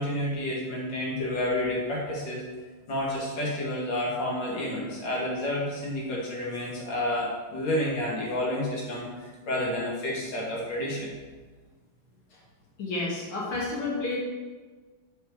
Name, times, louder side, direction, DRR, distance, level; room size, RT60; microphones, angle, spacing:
voice 1, 0.0-2.4 2.9-11.1, left 1 dB, 60° left, -4 dB, 2.5 m, -30 dB
voice 2, 12.8-14.2, left 3 dB, 80° left, -5 dB, 2.4 m, -30 dB
9.0 x 4.9 x 4.6 m, 1.4 s
omnidirectional pair, 2.3 m